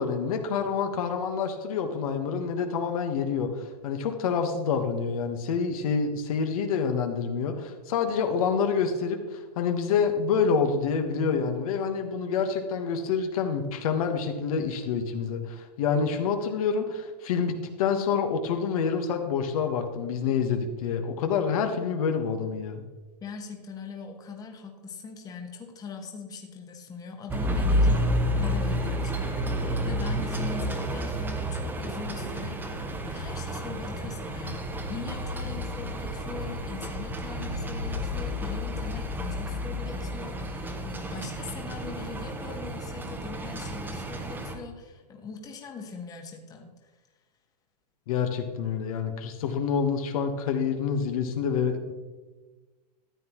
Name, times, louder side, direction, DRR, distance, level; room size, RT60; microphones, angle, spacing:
voice 1, 0.0-22.8 48.1-51.9, left 6 dB, 60° left, 6 dB, 1.3 m, -27 dB
voice 2, 23.2-46.9, left 4 dB, 15° left, 3 dB, 1.3 m, -41 dB
sound 1, 27.3-44.5, equal, 10° right, 1.0 m, -30 dB
13.5 x 8.9 x 3.1 m, 1.3 s
hypercardioid pair, 130°, 21 cm